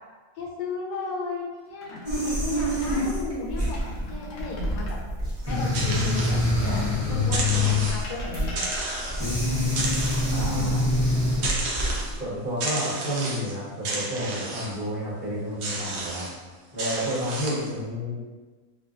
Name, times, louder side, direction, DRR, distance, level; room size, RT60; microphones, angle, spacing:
voice 1, 0.4-3.8 4.1-5.0 5.4-6.8 7.1-8.7, left 3 dB, 85° left, -3 dB, 1.2 m, -34 dB
sound 1, 1.7-3.0 3.5-5.0 5.9-7.0 7.7-9.5 11.4-12.1 12.5-12.7 15.6-16.2 16.9-17.6, left 1 dB, 65° left, 0.8 m, -43 dB
sound 2, 2.1-12.1, left 1 dB, 30° right, 0.4 m, -26 dB
sound 3, 5.4-6.9 7.2-8.2 8.5-9.3 9.7-10.6 11.4-12.2 12.6-13.5 13.8-14.8 15.6-16.3 16.8-17.7, right 2 dB, 70° right, 1.0 m, -32 dB
voice 2, 10.3-10.8 12.2-16.3 16.7-18.2, equal, 30° left, -14 dB, 0.9 m, -30 dB
3.1 x 2.2 x 2.4 m, 1.3 s
omnidirectional pair, 1.8 m